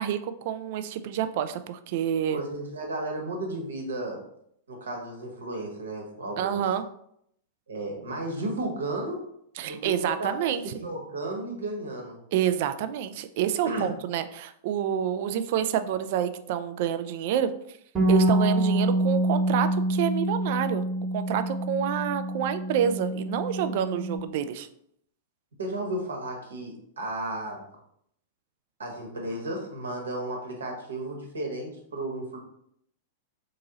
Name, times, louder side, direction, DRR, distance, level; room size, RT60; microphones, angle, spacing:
voice 1, 0.0-2.4 6.4-6.8 9.6-10.6 12.3-17.5 18.1-20.8 21.1-24.7, right 9 dB, 50° right, 10 dB, 0.3 m, -28 dB
voice 2, 2.3-4.2 4.7-6.6 7.7-9.2 9.6-12.2 13.6-13.9 25.6-27.6 28.8-32.4, right 1 dB, 70° right, 1 dB, 1.1 m, -34 dB
Bass guitar, 18.0-24.2, right 1 dB, 25° right, 1.2 m, -26 dB
3.7 x 2.7 x 3.9 m, 0.71 s
figure-of-eight pair, 95°, 0 cm